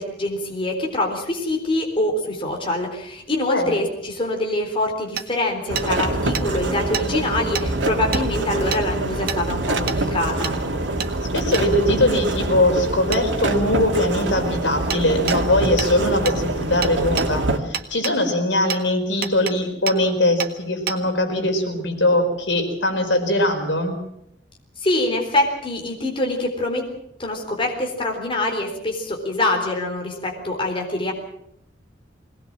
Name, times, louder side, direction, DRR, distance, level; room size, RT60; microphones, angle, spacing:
voice 1, 0.0-10.6 24.8-26.8 27.2-31.1, left 1 dB, 30° left, 1 dB, 3.8 m, -24 dB
Hammer, 5.2-5.3 5.8-5.9 6.3-6.5 6.9-7.1 7.5-7.7 8.1-8.2 8.7-8.8 9.3-9.4 9.9-10.0 10.4-10.6 11.0-11.1 11.5-11.7 13.1-13.2 14.9-15.0 15.3-15.4 15.8-15.9 16.3-16.4 16.8-17.3 17.7-18.2 18.7-18.8 19.2-19.6 19.9-20.0 20.4-20.5 20.9-21.0, right 7 dB, 55° right, 1.7 m, -27 dB
sound 1, 5.7-17.6, right 2 dB, 75° right, 2.4 m, -25 dB
voice 2, 11.3-23.9, left 1 dB, 75° left, 4 dB, 4.6 m, -21 dB
22.0 x 19.0 x 7.5 m, 0.79 s
head